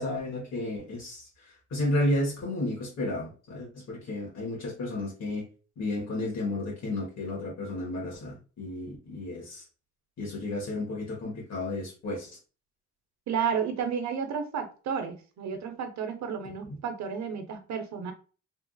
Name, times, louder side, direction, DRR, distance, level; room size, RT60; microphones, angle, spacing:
voice 1, 0.0-5.4 5.8-9.6 10.2-12.3, left 1 dB, 60° left, 1.4 m, -32 dB
voice 2, 13.3-18.1, right 7 dB, 65° right, 0.9 m, -32 dB
3.5 x 2.5 x 2.3 m
cardioid pair, 90°, 30 cm